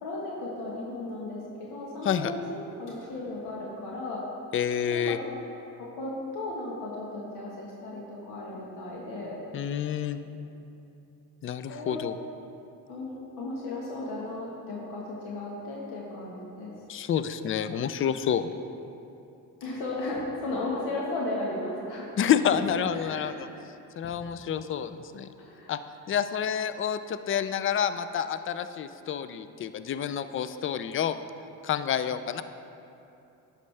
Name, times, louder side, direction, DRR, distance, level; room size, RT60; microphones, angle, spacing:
voice 1, 0.0-4.2 4.9-5.2 5.8-9.4 11.7-12.0 12.9-16.7 19.6-22.1 22.9-23.2 25.4-25.7, left 2 dB, 75° left, -4 dB, 1.5 m, -35 dB
voice 2, 4.5-5.2 9.5-10.2 11.4-12.2 16.9-18.5 22.2-23.3 24.0-25.3 25.7-25.8 26.1-31.2 31.6-32.4, left 8 dB, 35° left, 12 dB, 0.4 m, -28 dB
10.5 x 6.5 x 3.3 m, 2.8 s
cardioid pair, 85°, 38 cm